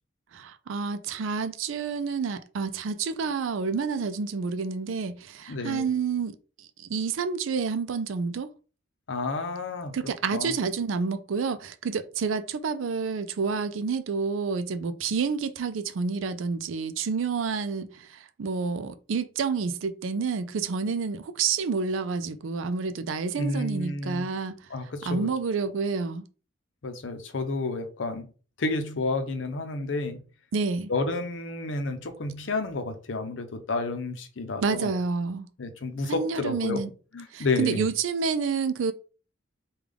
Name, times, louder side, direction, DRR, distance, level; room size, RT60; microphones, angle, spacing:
voice 1, 0.3-8.5 9.9-24.6 25.1-26.3 30.5-30.9 34.6-35.5 36.0-36.9 37.3-38.9, right 5 dB, 90° right, 0.4 m, -29 dB
voice 2, 5.5-5.9 9.1-10.0 10.3-10.5 23.4-24.3 24.7-25.3 26.8-28.3 28.6-30.2 30.9-34.9 35.6-36.8 37.1-37.9, left 3 dB, 75° left, 0.6 m, -30 dB
3.5 x 2.3 x 3.4 m
head